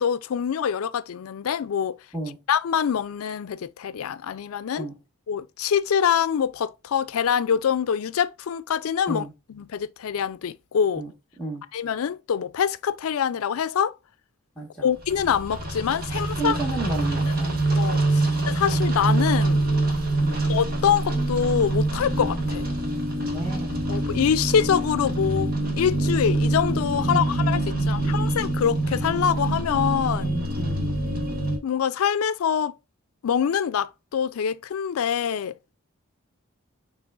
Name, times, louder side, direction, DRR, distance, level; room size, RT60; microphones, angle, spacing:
voice 1, 0.0-2.0 2.5-4.9 5.3-11.0 11.7-13.9 14.8-16.6 17.3-17.4 17.8-19.6 20.5-22.7 23.9-30.3 31.6-32.8 33.2-35.6, left 8 dB, 80° left, 0.4 m, -25 dB
voice 2, 14.6-14.9 16.4-17.6 18.2-18.4 20.2-20.4 23.2-23.8 27.0-27.3 27.8-27.9 30.2-30.8, right 3 dB, 5° left, 1.3 m, -32 dB
sound 1, 15.0-31.6, right 2 dB, 45° right, 1.4 m, -25 dB
6.0 x 3.3 x 2.4 m
head